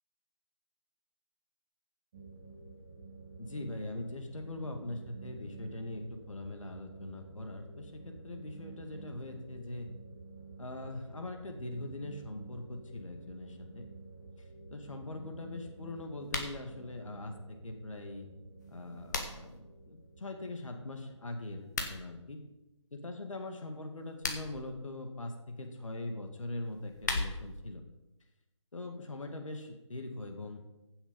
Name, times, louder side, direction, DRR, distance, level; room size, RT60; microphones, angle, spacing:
sound 1, 2.1-21.6, right 3 dB, 15° right, 0.8 m, -51 dB
voice 1, 3.4-9.9 10.6-13.8 14.7-18.3 18.7-22.4 22.9-27.8 28.7-30.6, left 2 dB, 80° left, 4 dB, 2.2 m, -42 dB
sound 2, 16.2-16.6 18.6-19.6 21.6-22.0 24.0-24.6 26.6-27.6, left 3 dB, 35° left, 1.5 m, -37 dB
16.0 x 7.3 x 5.4 m, 0.97 s
figure-of-eight pair, 170°, 16 cm